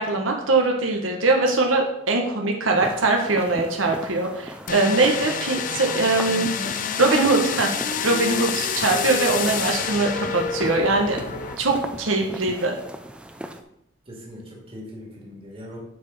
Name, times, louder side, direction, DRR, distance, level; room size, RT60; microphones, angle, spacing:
voice 1, 0.0-7.7 8.0-11.2 11.6-12.8, right 3 dB, 85° right, 1 dB, 1.3 m, -22 dB
sound 1, 2.8-13.6, equal, 5° right, 0.5 m, -38 dB
sound 2, 4.7-11.6, left 7 dB, 40° left, 0.5 m, -28 dB
voice 2, 14.1-15.8, equal, 30° right, -3 dB, 2.2 m, -40 dB
8.0 x 4.9 x 5.4 m, 0.77 s
head